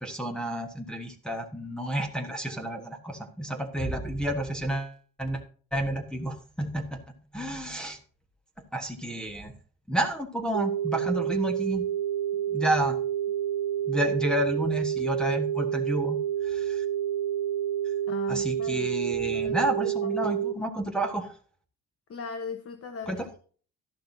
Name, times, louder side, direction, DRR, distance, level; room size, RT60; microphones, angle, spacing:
voice 1, 0.0-5.4 5.7-7.0 7.3-8.0 8.7-9.5 9.9-11.8 12.5-13.0 13.9-16.2 16.4-16.8 17.8-17.9 18.3-21.3 23.1-23.3, right 1 dB, ahead, 1.4 m, -30 dB
sound 1, 10.5-20.5, right 10 dB, 85° right, 1.6 m, -29 dB
voice 2, 18.1-18.9 19.3-20.1 22.1-23.4, left 5 dB, 45° left, 1.1 m, -39 dB
13.0 x 11.5 x 2.8 m
wide cardioid pair, 175°, 34 cm